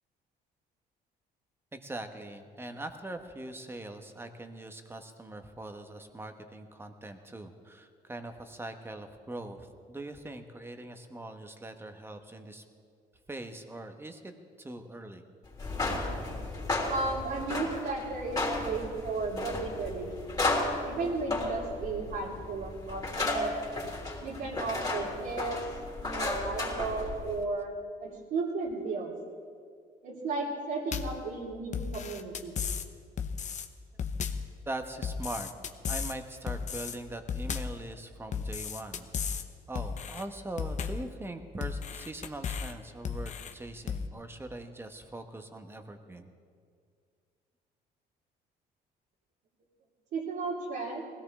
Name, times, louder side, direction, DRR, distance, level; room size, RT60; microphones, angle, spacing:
voice 1, 1.7-12.6 13.3-14.3 14.6-15.2 34.7-35.5 35.9-39.1 39.7-46.3, right 2 dB, 15° right, 6 dB, 1.3 m, -42 dB
sound 1, 15.5-27.4, left 2 dB, 20° left, 3.5 m, -34 dB
voice 2, 16.9-20.5 20.8-23.5 24.2-25.6 26.0-27.7 28.0-29.1 30.0-32.6 50.1-51.0, right 3 dB, 70° right, -6 dB, 2.8 m, -34 dB
sound 2, 30.9-31.2 31.7-32.9 33.2-33.7 34.0-34.5 35.0-36.2 36.5-37.0 37.3-37.8 38.3-39.5 39.8-40.2 40.6-41.1 41.6-42.7 43.1-43.5 43.9-44.1, left 6 dB, 45° left, 0.9 m, -34 dB
20.5 x 16.5 x 3.7 m, 2.2 s
cardioid pair, 110°, 17 cm